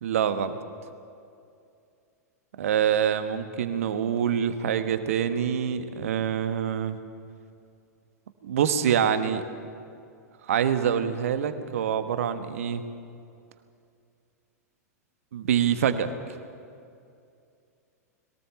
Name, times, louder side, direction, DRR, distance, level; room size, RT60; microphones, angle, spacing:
voice 1, 0.0-0.6 2.6-7.0 8.4-9.4 10.5-12.8 15.3-16.1, right 8 dB, 55° right, 10 dB, 1.3 m, -25 dB
22.0 x 18.5 x 7.0 m, 2.5 s
figure-of-eight pair, 95°, 9 cm